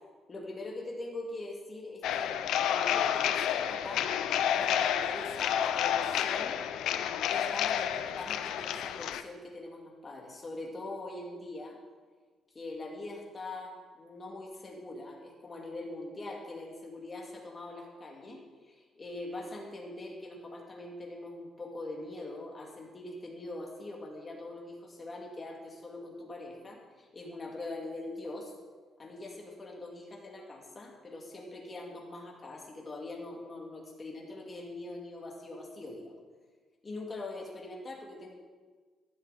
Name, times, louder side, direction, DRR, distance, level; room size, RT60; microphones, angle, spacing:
voice 1, 0.3-6.7 7.2-11.8 12.5-28.5 29.0-36.2 36.8-38.3, left 2 dB, 25° left, -1 dB, 2.6 m, -43 dB
sound 1, 2.0-9.2, left 9 dB, 80° left, 0.7 m, -30 dB
14.5 x 12.0 x 4.2 m, 1.4 s
cardioid pair, 150°, 0 cm